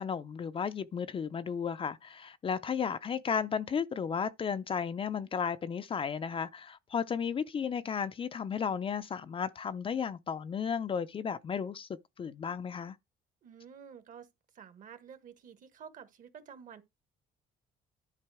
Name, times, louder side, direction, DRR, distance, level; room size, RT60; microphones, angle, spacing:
voice 1, 0.0-11.9 12.2-13.0, left 7 dB, 30° left, 0.5 m, -34 dB
voice 2, 13.4-14.3 14.5-16.8, right 7 dB, 50° right, 1.3 m, -50 dB
10.5 x 4.0 x 4.7 m
cardioid pair, 110°, 17 cm